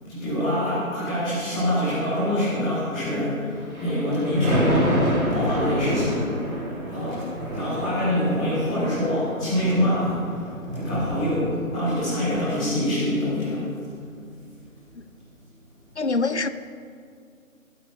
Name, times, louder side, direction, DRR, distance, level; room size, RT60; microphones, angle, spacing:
voice 1, 0.1-5.0 5.3-6.2 6.9-7.3 7.5-13.7, left 1 dB, 5° left, 1.6 m, -25 dB
Thunder, 3.6-11.9 12.3-12.4, equal, 85° right, 2.3 m, -28 dB
voice 2, 16.0-16.5, left 3 dB, 55° left, 0.5 m, -24 dB
14.5 x 12.0 x 2.6 m
figure-of-eight pair, 155°, 42 cm